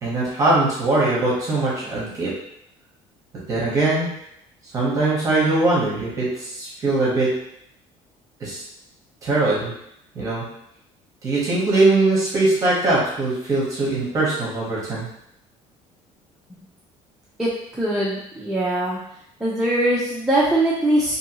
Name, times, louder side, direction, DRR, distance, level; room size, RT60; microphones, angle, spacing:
voice 1, 0.0-2.3 3.5-4.1 4.7-7.3 8.4-8.6 9.2-9.7 10.1-10.4 11.2-15.1, right 2 dB, 25° right, -6 dB, 0.8 m, -21 dB
voice 2, 17.4-19.0 19.4-21.2, right 1 dB, 5° right, -8 dB, 0.4 m, -21 dB
2.7 x 2.6 x 2.7 m, 0.75 s
cardioid pair, 175°, 12 cm